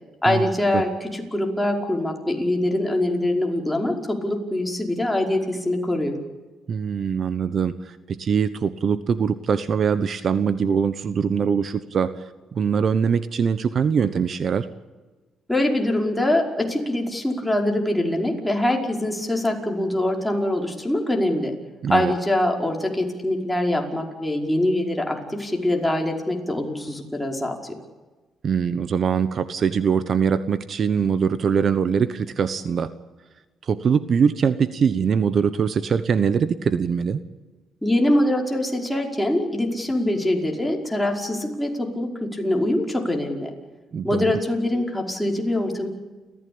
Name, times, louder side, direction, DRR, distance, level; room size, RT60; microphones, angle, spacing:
voice 1, 0.2-6.2 15.5-21.5 21.9-27.7 37.8-43.5 44.0-45.9, left 1 dB, 5° left, 0 dB, 5.2 m, -23 dB
voice 2, 6.7-14.7 21.8-22.1 28.4-32.9 33.6-37.2 43.9-44.3, right 6 dB, 55° right, 13 dB, 1.1 m, -22 dB
30.0 x 15.0 x 8.8 m, 1.3 s
cardioid pair, 90°, 0 cm